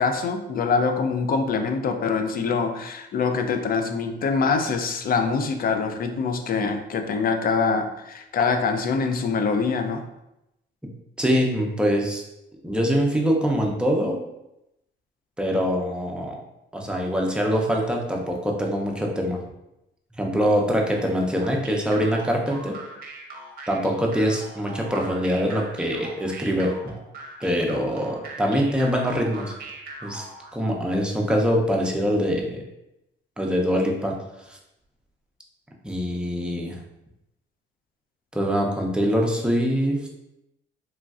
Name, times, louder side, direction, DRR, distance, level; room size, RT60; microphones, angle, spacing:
voice 1, 0.0-10.0, left 5 dB, 50° left, 6 dB, 0.4 m, -24 dB
voice 2, 11.2-12.2 12.6-14.2 15.4-16.3 16.7-19.4 20.2-22.8 23.7-26.7 27.4-29.5 30.0-30.3 30.5-32.6 33.4-34.2 34.5-34.6 35.8-36.8 38.3-40.1, equal, 5° right, -1 dB, 0.5 m, -24 dB
sound 1, 21.4-30.5, right 2 dB, 50° right, 0.7 m, -40 dB
3.1 x 2.4 x 2.3 m, 0.88 s
cardioid pair, 90°, 20 cm